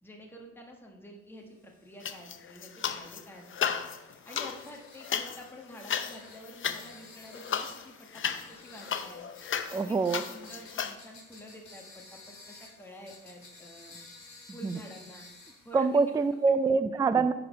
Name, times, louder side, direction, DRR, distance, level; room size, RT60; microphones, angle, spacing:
voice 1, 0.0-3.7 4.2-9.4 9.7-14.0 14.5-15.3 15.6-15.9 16.6-17.0, equal, 5° left, 0 dB, 1.2 m, -49 dB
sound 1, 1.6-16.5, left 3 dB, 60° left, 2.8 m, -54 dB
sound 2, 2.0-3.2 3.5-11.0, left 8 dB, 40° left, 0.6 m, -35 dB
voice 2, 9.7-10.2 14.6-14.8 15.7-17.3, right 4 dB, 15° right, 12 dB, 0.3 m, -25 dB
10.0 x 4.0 x 5.0 m, 1.1 s
cardioid pair, 90°, 30 cm